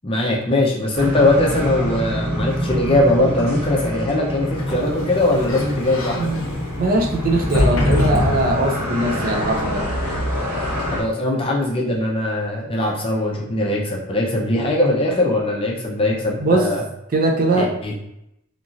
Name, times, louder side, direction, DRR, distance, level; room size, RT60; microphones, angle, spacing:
voice 1, 0.0-6.3 10.9-16.8 17.5-17.9, left 1 dB, 25° left, -1 dB, 0.5 m, -20 dB
highway on mushrooms, 0.9-11.0, equal, 75° right, 1.2 m, -27 dB
Sliding door, 4.4-9.1, left 1 dB, 65° left, 0.7 m, -24 dB
voice 2, 6.2-6.5 6.8-9.8 16.4-16.7 17.1-17.7, right 2 dB, 40° right, 2 dB, 0.4 m, -20 dB
2.9 x 2.7 x 2.5 m, 0.82 s
head